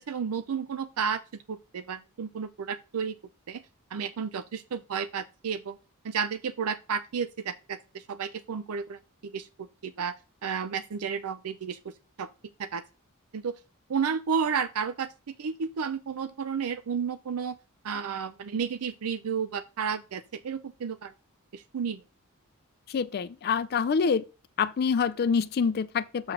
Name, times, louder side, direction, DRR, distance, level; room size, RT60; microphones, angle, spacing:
voice 1, 0.0-3.2 3.5-3.6 3.9-5.8 6.0-10.1 10.4-11.9 12.2-12.3 12.6-12.8 13.3-13.5 13.9-17.6 17.8-21.1 21.5-22.0, right 6 dB, 85° right, 0.5 m, -32 dB
voice 2, 22.9-24.2 24.6-26.3, left 6 dB, 50° left, 0.4 m, -26 dB
6.9 x 5.9 x 3.7 m
head